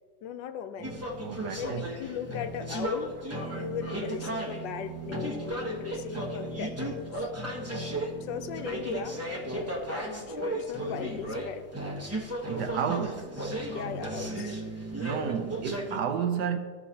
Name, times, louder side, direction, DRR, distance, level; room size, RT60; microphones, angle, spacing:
voice 1, 0.2-0.9 1.4-3.1 3.5-7.3 8.2-11.7 13.7-14.6, left 8 dB, 85° left, 1.3 m, -38 dB
sound 1, 0.8-16.0, right 1 dB, 15° right, 0.6 m, -35 dB
voice 2, 1.2-1.8 12.5-13.4 15.0-16.6, right 7 dB, 70° right, 1.3 m, -31 dB
14.0 x 5.6 x 2.8 m
omnidirectional pair, 1.9 m